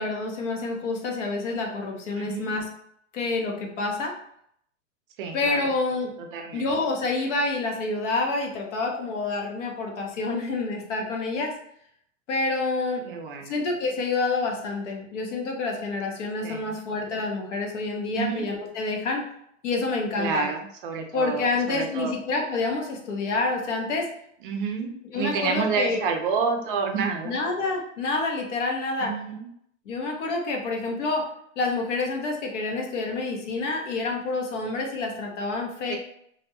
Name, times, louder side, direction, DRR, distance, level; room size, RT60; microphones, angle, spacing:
voice 1, 0.0-2.6 3.1-4.1 5.3-6.1 6.5-11.5 12.3-13.1 13.4-19.2 19.6-20.5 21.1-24.1 25.1-26.0 27.2-29.1 29.9-31.2 31.6-36.0, left 3 dB, 65° left, 1 dB, 0.9 m, -28 dB
voice 2, 2.2-2.5 5.2-5.6 6.3-6.7 13.1-13.5 16.4-16.8 18.2-18.4 20.2-22.1 24.4-27.3 29.1-29.5 35.9-36.0, right 5 dB, 45° right, 4 dB, 0.4 m, -29 dB
2.5 x 2.1 x 2.8 m, 0.70 s
hypercardioid pair, 125°, 39 cm